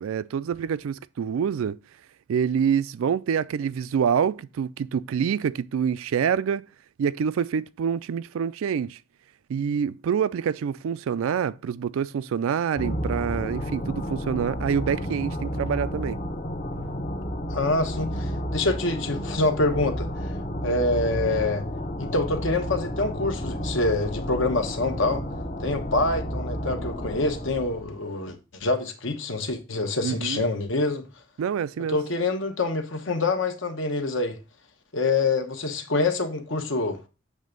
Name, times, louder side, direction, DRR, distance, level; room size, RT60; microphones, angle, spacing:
voice 1, 0.0-1.8 2.3-6.6 7.0-9.0 9.5-16.2 30.0-30.5 31.4-32.0, right 7 dB, 80° right, 0.3 m, -26 dB
sound 1, 12.8-27.9, equal, 40° left, 0.9 m, -31 dB
voice 2, 17.5-20.1 20.6-21.6 22.0-25.2 25.6-31.1 31.9-34.4 34.9-37.0, left 2 dB, 65° left, 1.0 m, -26 dB
7.4 x 3.4 x 5.1 m
head